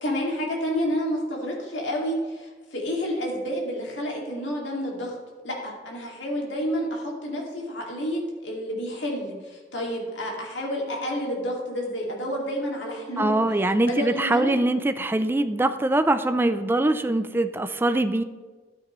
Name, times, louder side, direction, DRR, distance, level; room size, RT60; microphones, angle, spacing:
voice 1, 0.0-5.2 5.4-13.4 13.8-14.5, equal, 70° left, -1 dB, 2.2 m, -29 dB
voice 2, 13.2-18.2, right 2 dB, 10° right, 9 dB, 0.4 m, -23 dB
12.5 x 8.4 x 3.1 m, 1.4 s
head